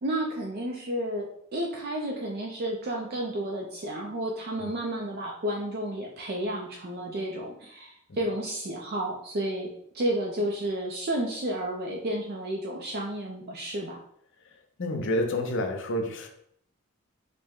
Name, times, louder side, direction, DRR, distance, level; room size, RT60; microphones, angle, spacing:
voice 1, 0.0-14.0, right 1 dB, 45° right, -1 dB, 0.5 m, -31 dB
voice 2, 14.8-16.3, left 1 dB, 60° left, 4 dB, 0.6 m, -29 dB
4.9 x 2.1 x 3.6 m, 0.69 s
head